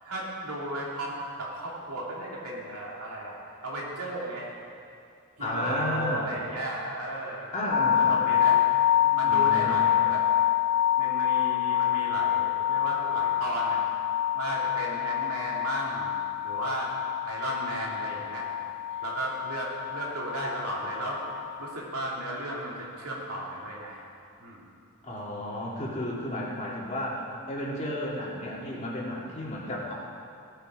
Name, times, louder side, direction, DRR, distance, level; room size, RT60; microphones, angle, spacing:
voice 1, 0.0-3.4 3.6-4.6 5.4-7.5 8.0-8.6 9.0-10.2 11.0-13.8 14.3-16.1 16.4-18.5 19.0-24.0 24.4-24.7, right 1 dB, 85° right, -4 dB, 2.8 m, -35 dB
voice 2, 5.4-6.2 7.5-8.2 9.3-9.8 25.0-29.9, left 1 dB, 30° left, -4 dB, 2.1 m, -32 dB
sound 1, 7.7-21.7, left 11 dB, 55° left, 0.3 m, -27 dB
17.0 x 7.8 x 5.0 m, 2.5 s
head